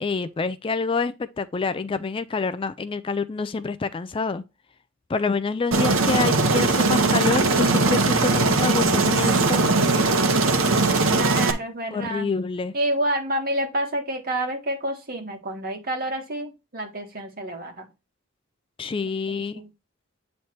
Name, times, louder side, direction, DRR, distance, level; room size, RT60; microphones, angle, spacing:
voice 1, 0.0-4.4 5.1-9.6 11.9-12.7 18.8-19.6, left 4 dB, 25° left, 0.3 m, -27 dB
Aircraft, 5.7-11.5, right 3 dB, 85° right, 0.9 m, -20 dB
voice 2, 11.1-12.3 12.7-17.9 19.3-19.7, right 1 dB, 50° right, 1.6 m, -28 dB
8.2 x 3.2 x 4.3 m
head